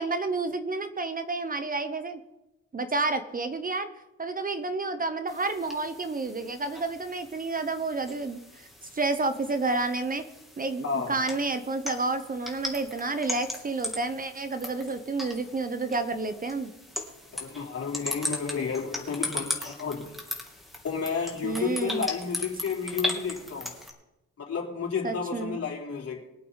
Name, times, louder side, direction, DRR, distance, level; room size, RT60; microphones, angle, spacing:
voice 1, 0.0-2.2 2.7-3.9 4.2-8.7 8.9-10.3 10.6-16.7 21.4-22.0 25.0-25.6, right 3 dB, 30° right, 10 dB, 1.0 m, -30 dB
sound 1, 5.3-23.9, left 1 dB, ahead, 2.9 m, -38 dB
voice 2, 10.8-11.2 17.3-20.1 20.8-23.7 24.4-26.3, left 6 dB, 50° left, -1 dB, 3.7 m, -31 dB
23.0 x 8.4 x 4.1 m, 0.95 s
cardioid pair, 90°, 30 cm